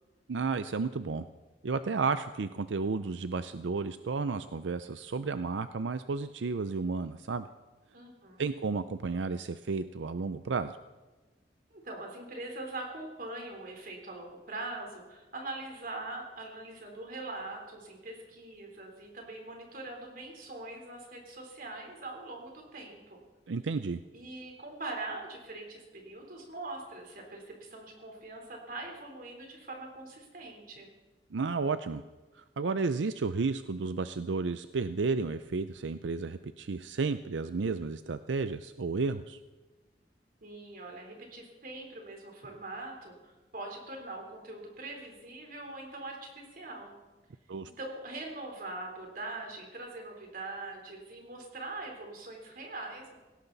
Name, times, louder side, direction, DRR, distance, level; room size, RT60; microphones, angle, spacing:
voice 1, 0.3-1.3 1.6-7.5 8.4-10.8 23.5-24.0 31.3-32.0 32.3-39.4 47.5-47.7, right 4 dB, 90° right, 11 dB, 0.5 m, -32 dB
voice 2, 7.9-8.5 11.7-23.2 24.1-30.9 40.4-46.9 47.8-53.1, right 2 dB, 50° right, 1 dB, 3.7 m, -42 dB
17.5 x 17.5 x 4.1 m, 1.2 s
head